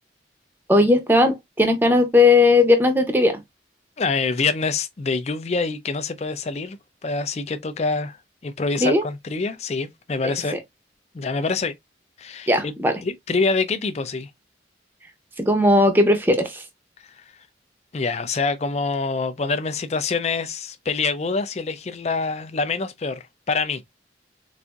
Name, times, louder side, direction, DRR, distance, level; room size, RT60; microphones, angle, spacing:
voice 1, 0.7-3.4 8.8-9.0 12.5-12.9 15.4-16.6, left 2 dB, 10° right, 0.6 m, -17 dB
voice 2, 4.0-8.2 8.4-10.6 11.1-11.7 12.2-12.7 13.0-14.3 17.0-17.2 17.9-23.8, left 4 dB, 35° left, 0.5 m, -26 dB
4.1 x 2.6 x 2.3 m
head